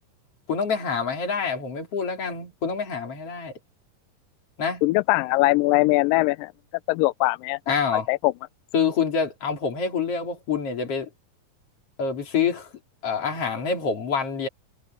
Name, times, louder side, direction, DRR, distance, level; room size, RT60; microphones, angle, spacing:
voice 1, 0.5-3.5 4.6-4.8 7.7-8.1 8.7-11.1 12.0-12.7 13.0-14.5, left 6 dB, 45° left, 3.9 m, -26 dB
voice 2, 4.8-6.5 6.9-7.6 7.9-8.3, left 19 dB, 80° left, 2.1 m, -21 dB
omnidirectional pair, 4.1 m